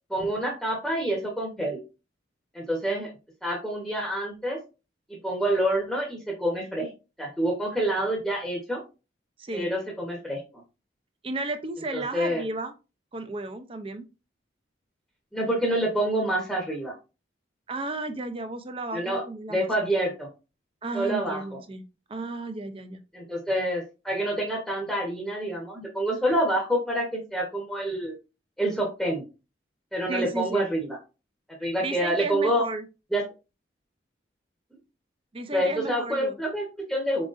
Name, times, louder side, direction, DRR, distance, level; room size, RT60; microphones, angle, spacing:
voice 1, 0.1-1.8 2.5-3.1 3.4-4.6 5.1-6.9 7.2-8.8 9.5-10.4 11.9-12.4 15.3-16.9 18.9-19.2 19.5-20.3 20.9-21.4 23.1-28.2 28.6-29.2 29.9-31.0 31.6-32.6 33.1-33.3 35.5-37.2, right 1 dB, ahead, -2 dB, 0.9 m, -27 dB
voice 2, 11.2-12.7 13.1-14.1 17.7-19.7 20.8-21.8 22.1-23.0 30.1-30.7 31.8-32.8 35.3-36.4, right 2 dB, 30° right, 9 dB, 0.5 m, -33 dB
4.7 x 3.9 x 2.4 m, 0.30 s
head